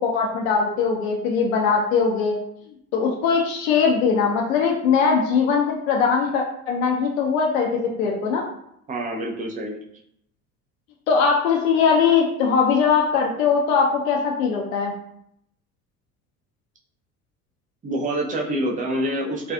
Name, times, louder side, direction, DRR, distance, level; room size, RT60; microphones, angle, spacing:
voice 1, 0.0-2.4 2.9-8.4 11.1-14.9, left 5 dB, 65° left, 0 dB, 0.5 m, -21 dB
voice 2, 8.9-9.8 17.8-19.5, right 1 dB, 20° right, -1 dB, 0.5 m, -26 dB
2.5 x 2.3 x 2.3 m, 0.73 s
figure-of-eight pair, 60°, 44 cm